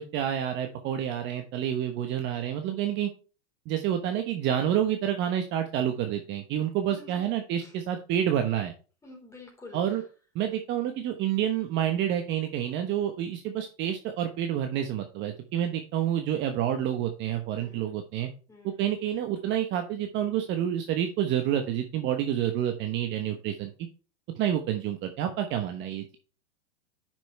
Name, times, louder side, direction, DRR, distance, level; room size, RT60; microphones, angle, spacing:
voice 1, 0.0-3.1 3.7-8.7 9.7-10.0 10.3-18.3 18.6-23.7 24.3-26.2, right 10 dB, 30° right, 6 dB, 1.1 m, -28 dB
voice 2, 6.9-7.2 9.0-9.8 17.6-18.0 18.5-18.8, left 2 dB, 10° left, 0 dB, 4.1 m, -48 dB
10.0 x 6.1 x 3.3 m, 0.35 s
hypercardioid pair, 135°, 36 cm